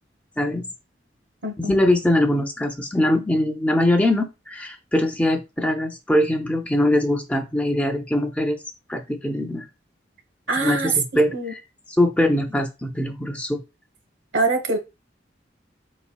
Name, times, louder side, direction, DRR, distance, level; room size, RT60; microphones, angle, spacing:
voice 1, 0.4-0.7 1.6-8.6 8.9-9.7 10.6-11.6 12.0-13.6, left 1 dB, 5° left, 0.5 m, -22 dB
voice 2, 1.4-1.8 10.5-10.9 11.3-11.5 14.3-14.8, right 2 dB, 80° right, 1.1 m, -24 dB
5.0 x 4.1 x 2.2 m
head